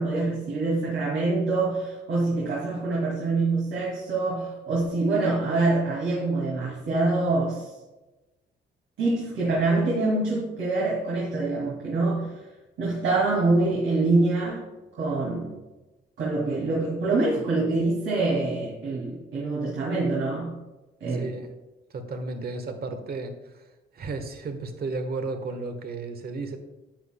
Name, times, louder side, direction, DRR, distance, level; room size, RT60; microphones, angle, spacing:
voice 1, 0.0-7.7 9.0-12.3 12.8-14.7 15.0-15.6 16.2-20.5 21.0-21.4, right 3 dB, 75° right, -5 dB, 2.3 m, -25 dB
voice 2, 21.1-21.5 21.9-23.3 24.0-26.6, right 3 dB, 50° right, 6 dB, 1.3 m, -33 dB
10.5 x 8.2 x 2.2 m, 1.1 s
cardioid pair, 90°, 20 cm